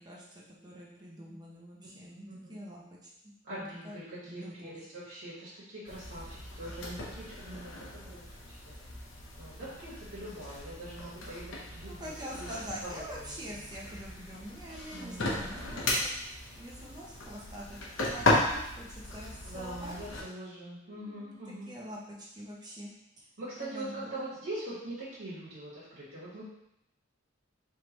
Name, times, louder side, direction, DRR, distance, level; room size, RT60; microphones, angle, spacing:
voice 1, 0.0-3.1 3.5-4.8 11.9-17.8 18.1-20.0 20.8-21.4 21.7-23.3 23.5-24.2, equal, 20° right, -5 dB, 0.7 m, -45 dB
voice 2, 3.4-8.3 8.6-8.7 9.4-12.1 12.4-12.5 12.8-13.6 14.9-15.5 19.4-21.8 23.4-26.4, right 1 dB, 75° right, -10 dB, 1.5 m, -43 dB
sound 1, 5.9-20.2, left 2 dB, 80° left, 0.9 m, -36 dB
4.7 x 3.3 x 3.0 m, 0.82 s
head